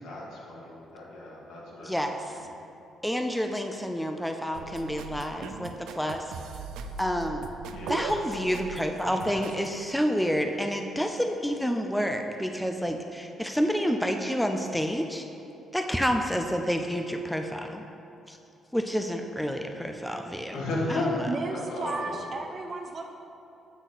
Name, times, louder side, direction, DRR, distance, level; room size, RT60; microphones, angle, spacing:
voice 1, 0.0-1.9 2.3-2.4 7.7-7.9 20.5-21.2 21.5-22.1, left 2 dB, 90° left, -4 dB, 1.8 m, -33 dB
voice 2, 1.8-2.2 3.0-6.2 7.0-7.5 7.9-15.2 15.7-17.8 18.3-18.4 18.7-20.6 20.9-21.1, equal, ahead, 4 dB, 0.4 m, -29 dB
sound 1, 4.5-9.7, right 5 dB, 90° right, 0.4 m, -39 dB
voice 3, 21.3-23.1, right 3 dB, 35° right, 4 dB, 0.6 m, -34 dB
8.2 x 5.9 x 4.0 m, 2.7 s
cardioid pair, 145°, 0 cm